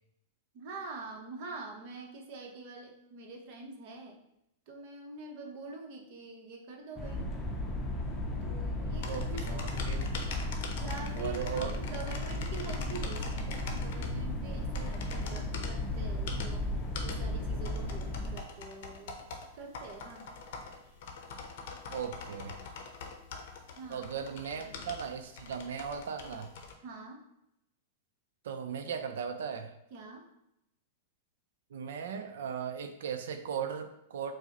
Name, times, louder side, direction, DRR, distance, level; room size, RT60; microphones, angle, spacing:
voice 1, 0.5-4.2 4.7-7.3 8.4-10.1 10.7-16.7 17.0-19.3 19.5-20.3 23.8-24.1 24.5-24.8 26.8-27.2 29.9-30.2, right 3 dB, 55° right, 2 dB, 0.8 m, -45 dB
sound 1, 7.0-18.4, left 1 dB, 20° left, 0.6 m, -35 dB
sound 2, 8.9-26.7, left 4 dB, 65° left, 0.6 m, -44 dB
voice 2, 9.0-10.2 11.2-11.8 21.9-22.6 23.9-26.5 28.4-29.7 31.7-34.3, right 7 dB, 75° right, 7 dB, 0.4 m, -37 dB
4.6 x 2.0 x 2.9 m, 0.82 s
hypercardioid pair, 125°, 0 cm